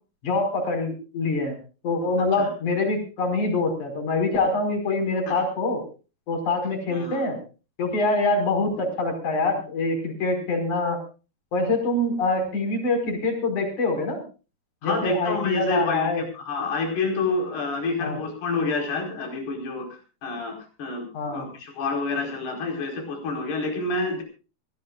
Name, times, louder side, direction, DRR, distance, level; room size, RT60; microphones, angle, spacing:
voice 1, 0.2-1.5 1.8-5.8 6.3-7.4 7.8-11.0 11.5-14.2 14.8-16.2 18.0-18.2 21.1-21.4, left 2 dB, 50° left, 5 dB, 6.6 m, -25 dB
voice 2, 6.9-7.2 14.8-24.2, left 3 dB, 85° left, 3 dB, 6.7 m, -28 dB
24.0 x 17.5 x 2.5 m, 0.34 s
omnidirectional pair, 4.5 m